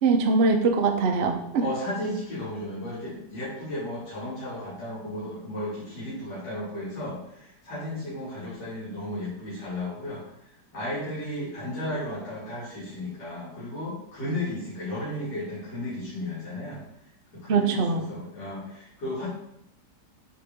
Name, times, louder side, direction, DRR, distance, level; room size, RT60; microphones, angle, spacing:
voice 1, 0.0-1.6 17.5-18.0, right 4 dB, 55° right, 4 dB, 0.7 m, -22 dB
voice 2, 1.6-10.2 10.7-16.8 17.3-19.3, left 1 dB, 65° left, -10 dB, 3.2 m, -34 dB
7.7 x 4.2 x 3.6 m, 0.75 s
omnidirectional pair, 2.0 m